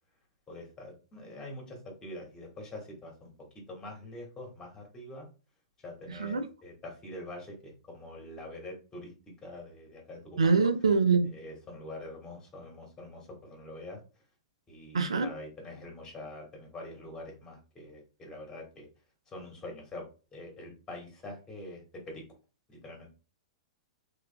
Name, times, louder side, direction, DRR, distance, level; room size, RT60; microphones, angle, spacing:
voice 1, 0.5-3.3 3.7-5.3 5.8-9.1 9.4-10.6 11.2-14.0 14.7-18.9 19.3-20.0 20.3-22.2 22.7-23.1, left 1 dB, 20° left, 1.6 m, -45 dB
voice 2, 10.4-11.3 14.9-15.3, right 4 dB, 75° right, 0.5 m, -24 dB
3.3 x 3.2 x 2.3 m
figure-of-eight pair, 105°, 3 cm